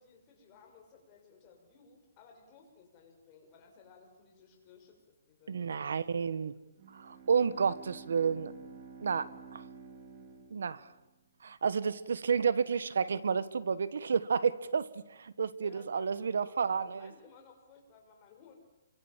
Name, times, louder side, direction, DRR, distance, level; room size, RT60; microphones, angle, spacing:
voice 1, 0.0-5.0 5.3-6.0 6.3-6.4 15.6-18.6, left 5 dB, 25° left, 2 dB, 6.2 m, -59 dB
voice 2, 5.5-6.5 6.9-8.5 9.0-9.6 10.5-10.9 11.4-17.1, right 6 dB, 80° right, 17 dB, 1.5 m, -31 dB
Bowed string instrument, 6.8-11.4, right 5 dB, 35° right, 3.1 m, -51 dB
28.5 x 24.0 x 7.5 m, 1.0 s
hypercardioid pair, 165°, 0 cm